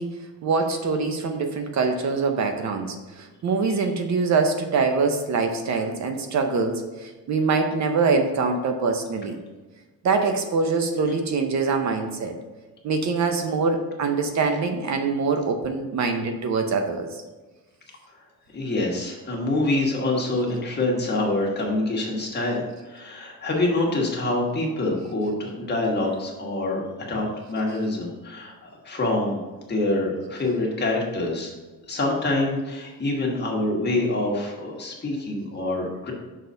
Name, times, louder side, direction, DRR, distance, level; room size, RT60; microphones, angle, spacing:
voice 1, 0.0-9.4 10.0-12.3 12.8-17.2, right 4 dB, 50° right, 6 dB, 0.7 m, -24 dB
voice 2, 18.5-29.4 29.7-31.5 31.9-36.1, left 2 dB, 30° left, -2 dB, 1.4 m, -26 dB
6.2 x 4.1 x 5.2 m, 1.2 s
cardioid pair, 150°, 36 cm